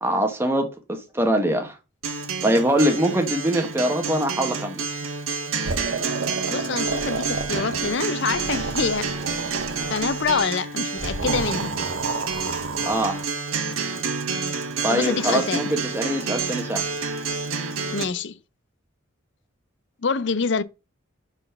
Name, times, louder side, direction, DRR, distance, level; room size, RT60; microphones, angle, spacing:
voice 1, 0.0-1.8 2.4-4.8 12.8-13.2 14.8-16.9, right 1 dB, 10° right, 1.0 m, -23 dB
Acoustic guitar, 2.0-18.0, right 5 dB, 90° right, 1.3 m, -29 dB
sound 1, 5.6-8.0 8.3-10.4 11.0-13.3, right 4 dB, 70° right, 0.8 m, -31 dB
voice 2, 6.5-9.1 9.9-11.7 14.9-15.7 17.9-18.4 20.0-20.6, left 5 dB, 60° left, 0.5 m, -26 dB
5.7 x 4.1 x 5.5 m
head